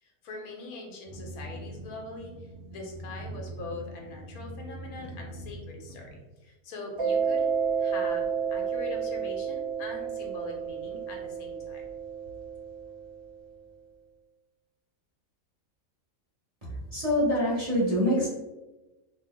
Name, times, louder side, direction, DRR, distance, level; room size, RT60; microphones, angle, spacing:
voice 1, 0.0-7.5 7.8-11.8, left 3 dB, 85° left, 1 dB, 1.2 m, -42 dB
sound 1, 1.1-6.2, right 1 dB, 65° right, 0.9 m, -43 dB
Mallet percussion, 7.0-13.4, right 6 dB, 50° right, 0.3 m, -31 dB
voice 2, 16.9-18.3, equal, 30° right, -8 dB, 0.9 m, -25 dB
2.8 x 2.1 x 3.6 m, 1.1 s
omnidirectional pair, 1.5 m